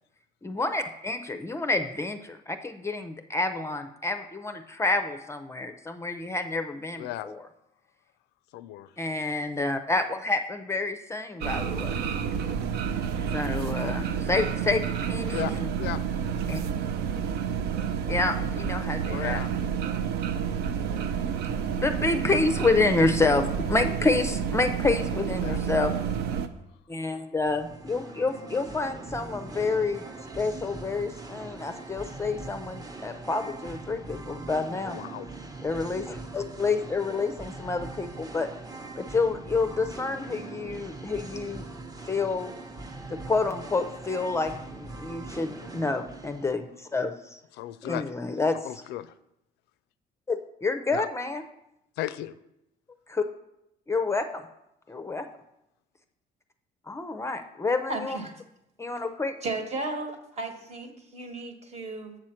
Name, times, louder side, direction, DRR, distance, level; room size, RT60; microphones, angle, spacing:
voice 1, 0.4-7.5 9.0-11.9 13.3-15.7 16.5-16.6 18.1-19.4 21.7-25.9 26.9-30.0 30.3-35.0 35.6-38.5 39.0-41.6 42.1-42.5 43.1-47.4 47.8-48.6 50.3-51.4 53.1-53.2 53.9-54.5 54.9-55.2 56.9-58.2 58.8-59.3, left 3 dB, 15° left, 8 dB, 0.5 m, -28 dB
voice 2, 7.0-7.3 8.5-8.9 15.3-16.0 19.1-19.5 25.4-25.6 25.9-26.0 34.8-35.2 47.5-48.1 48.6-49.1 50.9-51.1 52.0-52.3, left 13 dB, 85° left, 14 dB, 0.4 m, -35 dB
sound 1, 11.4-26.5, right 7 dB, 75° right, 0.6 m, -29 dB
Singing, 27.4-46.5, right 3 dB, 20° right, 0.8 m, -41 dB
voice 3, 57.9-58.3 59.4-62.2, right 2 dB, 40° right, 5 dB, 1.2 m, -34 dB
7.6 x 6.3 x 4.4 m, 0.83 s
cardioid pair, 110°, 17 cm